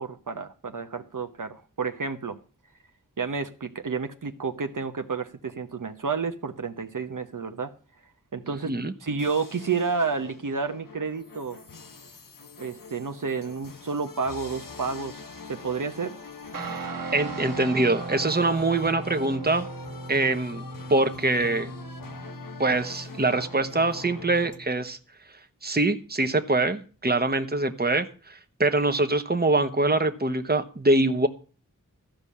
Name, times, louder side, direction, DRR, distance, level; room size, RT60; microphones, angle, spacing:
voice 1, 0.0-2.4 3.2-7.7 8.3-8.7 9.0-11.6 12.6-15.2 15.5-16.2, right 5 dB, 70° right, 1.0 m, -30 dB
sound 1, 9.2-24.5, left 4 dB, 80° left, 1.4 m, -45 dB
Guitar, 16.5-24.7, right 3 dB, 85° right, 1.4 m, -38 dB
voice 2, 17.1-19.7 20.1-20.6 20.9-21.7 22.6-25.0 25.6-31.3, right 2 dB, 30° right, 1.2 m, -24 dB
14.5 x 5.4 x 8.6 m
wide cardioid pair, 45°, 33 cm